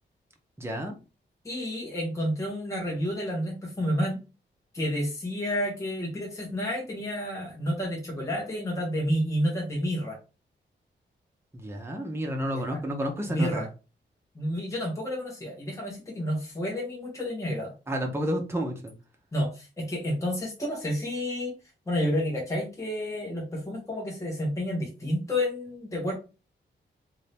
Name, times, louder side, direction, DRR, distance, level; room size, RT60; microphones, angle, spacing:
voice 1, 0.6-0.9 11.5-13.7 17.9-18.9, equal, 10° right, 2 dB, 0.8 m, -30 dB
voice 2, 1.4-4.2 4.7-10.2 12.5-12.8 13.3-13.7 14.3-17.7 19.3-21.5 21.9-26.1, equal, 15° left, -2 dB, 1.2 m, -30 dB
2.7 x 2.7 x 3.4 m, 0.31 s
cardioid pair, 85°, 20 cm